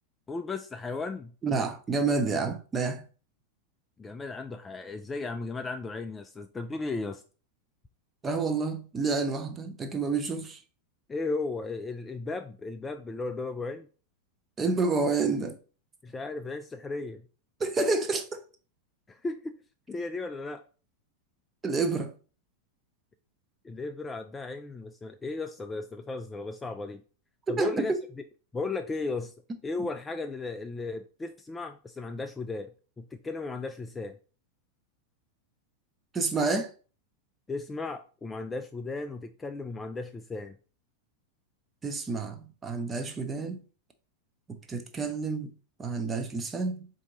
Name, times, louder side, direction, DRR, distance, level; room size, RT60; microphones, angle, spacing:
voice 1, 0.3-1.3 4.0-7.2 11.1-13.9 16.0-17.2 19.1-19.5 19.9-20.6 23.6-27.0 27.5-27.9 28.5-29.3 29.6-32.7 33.0-34.2 37.5-40.6, left 3 dB, 15° left, 0.3 m, -35 dB
voice 2, 1.4-3.0 8.2-10.6 14.6-15.6 17.6-18.4 21.6-22.1 27.5-28.0 36.1-36.7 41.8-43.6 44.7-45.5 45.8-46.9, right 4 dB, 20° right, 0.7 m, -29 dB
4.4 x 2.8 x 3.9 m
figure-of-eight pair, 90°, 0 cm